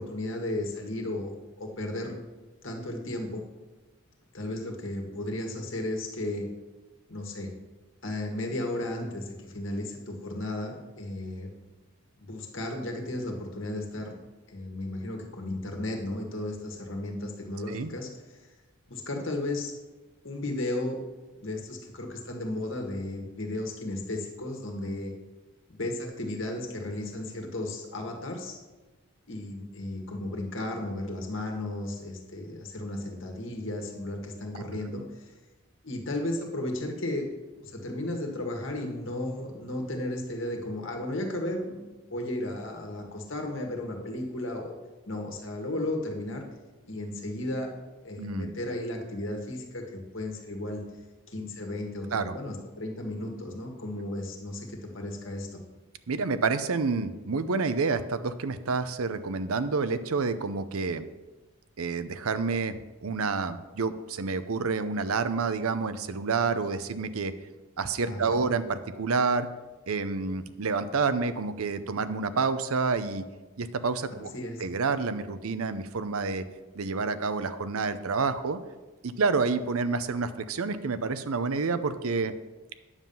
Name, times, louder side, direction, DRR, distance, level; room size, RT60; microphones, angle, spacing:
voice 1, 0.0-2.1 2.6-3.4 4.3-6.5 7.1-7.5 8.0-11.5 12.2-14.1 14.5-18.1 18.9-19.7 20.2-21.0 21.4-25.1 25.7-28.6 29.3-35.3 35.8-37.3 37.6-44.8 45.1-46.4 46.9-47.7 48.0-50.8 51.3-55.6 68.1-68.5 74.3-74.6, left 1 dB, 55° left, 2 dB, 1.7 m, -34 dB
voice 2, 48.2-48.5 52.1-52.3 56.1-61.0 61.8-62.8 63.0-67.3 67.8-69.5 69.9-73.2 73.6-74.3 74.6-76.4 76.8-78.6 79.0-82.3, right 4 dB, 75° right, 12 dB, 0.6 m, -28 dB
9.8 x 7.4 x 5.5 m, 1.2 s
head